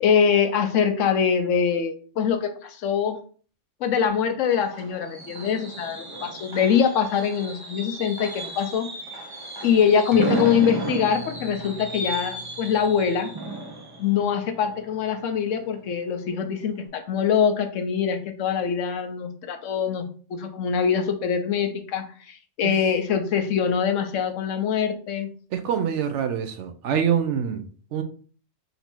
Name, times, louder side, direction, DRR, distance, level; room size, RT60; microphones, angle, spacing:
voice 1, 0.0-3.2 3.8-8.9 9.6-13.3 14.0-20.0 20.3-25.3, left 7 dB, 80° left, 1.0 m, -23 dB
Fireworks, 4.1-15.8 16.1-16.4 16.7-16.8, right 2 dB, 25° right, 0.6 m, -35 dB
sound 1, 10.1-15.1 15.4-15.5, left 2 dB, 25° left, 0.4 m, -40 dB
voice 2, 25.5-28.0, right 8 dB, 70° right, 0.8 m, -25 dB
4.0 x 2.7 x 4.4 m
omnidirectional pair, 1.3 m